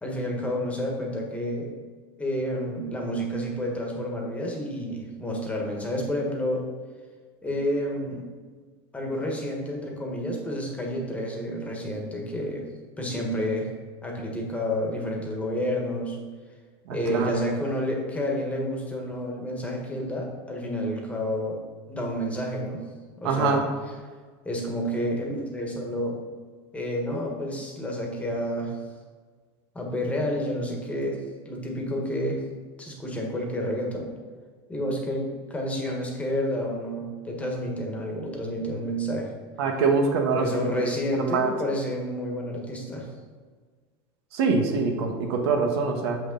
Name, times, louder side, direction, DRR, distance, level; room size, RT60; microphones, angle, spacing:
voice 1, 0.0-1.7 2.2-6.6 7.4-8.2 8.9-12.7 13.0-13.7 14.0-16.2 16.9-21.6 21.9-22.8 23.2-23.6 24.4-26.2 26.7-28.7 29.7-31.2 31.4-32.4 32.8-34.1 34.7-39.3 40.3-43.1, equal, 10° left, 0 dB, 1.4 m, -29 dB
voice 2, 16.9-17.3 23.2-23.6 39.6-40.5 40.7-41.5 44.3-46.2, right 4 dB, 85° right, 3 dB, 1.3 m, -24 dB
7.1 x 6.0 x 3.9 m, 1.5 s
supercardioid pair, 145°, 13 cm